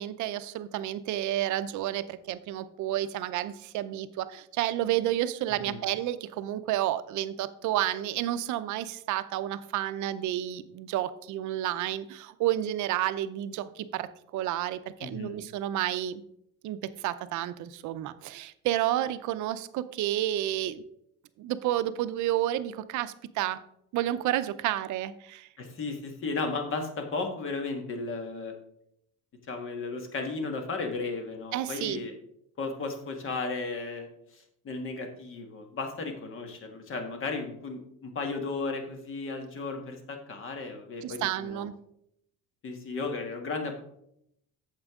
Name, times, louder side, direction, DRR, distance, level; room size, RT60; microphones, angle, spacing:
voice 1, 0.0-16.2 16.6-20.8 21.4-23.6 23.9-25.5 31.5-32.0 41.0-41.7, right 13 dB, 60° right, 13 dB, 0.6 m, -30 dB
voice 2, 15.0-15.4 25.6-28.5 29.5-32.1 32.6-34.1 34.3-41.6 42.6-43.8, left 3 dB, 40° left, 5 dB, 1.5 m, -35 dB
8.8 x 7.4 x 3.6 m, 0.73 s
cardioid pair, 170°, 33 cm